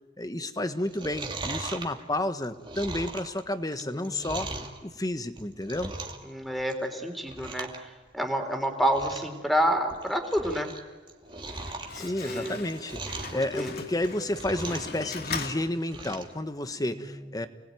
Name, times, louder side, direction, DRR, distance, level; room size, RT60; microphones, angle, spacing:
voice 1, 0.2-4.5 4.8-5.9 11.9-13.0 13.3-17.5, left 1 dB, 20° left, 9 dB, 1.4 m, -31 dB
Chewing mastication, 0.8-4.8 5.2-6.3 6.6-6.9 7.3-7.8 8.1-8.2 8.6-8.7 8.9-9.3 9.8-10.8 11.1-13.4 13.9-15.0 15.3-16.3 16.7-16.8, right 3 dB, 25° right, 2.6 m, -38 dB
voice 2, 3.8-4.3 6.3-7.9 8.1-10.7 12.0-12.6 13.3-13.7, equal, ahead, 3 dB, 3.7 m, -29 dB
Slam, 11.2-16.4, left 4 dB, 55° left, 2.5 m, -40 dB
30.0 x 20.5 x 9.4 m, 1.4 s
head